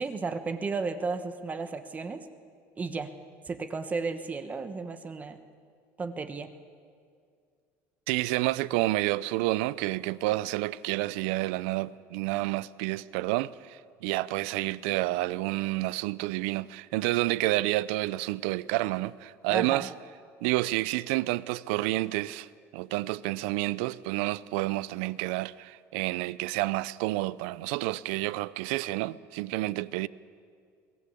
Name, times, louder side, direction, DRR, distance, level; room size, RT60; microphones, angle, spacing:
voice 1, 0.0-2.2 2.8-3.1 3.5-5.4 6.0-6.5 19.5-19.9, right 4 dB, 25° right, 1.1 m, -33 dB
voice 2, 8.1-19.9 20.4-22.5 22.7-30.1, right 18 dB, 90° right, 0.5 m, -29 dB
22.0 x 15.0 x 8.4 m
cardioid pair, 120°, 6 cm